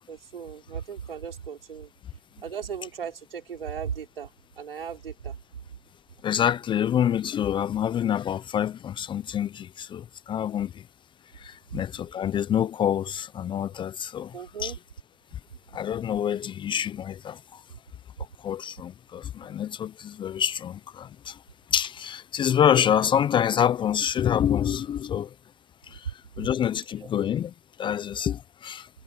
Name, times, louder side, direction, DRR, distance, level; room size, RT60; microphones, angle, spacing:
voice 1, 0.0-1.9 2.4-4.3 4.6-5.4 11.7-11.8 14.3-14.8 27.0-27.1, right 7 dB, 75° right, 6.1 m, -36 dB
voice 2, 6.2-10.8 11.3-14.7 15.7-17.6 18.4-21.4 21.7-25.3 25.8-28.9, left 9 dB, 15° left, 0.9 m, -27 dB
hypercardioid pair, 115°, 29 cm